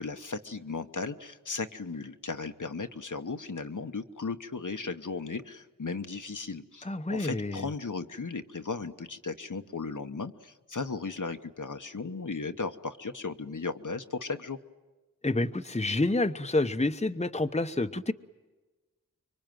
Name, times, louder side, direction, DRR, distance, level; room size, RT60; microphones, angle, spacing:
voice 1, 0.0-14.6, left 4 dB, 60° left, 7 dB, 1.1 m, -36 dB
voice 2, 6.8-7.7 15.2-18.1, left 2 dB, 20° left, 8 dB, 0.9 m, -28 dB
25.5 x 24.0 x 9.2 m, 1.2 s
wide cardioid pair, 40°, 34 cm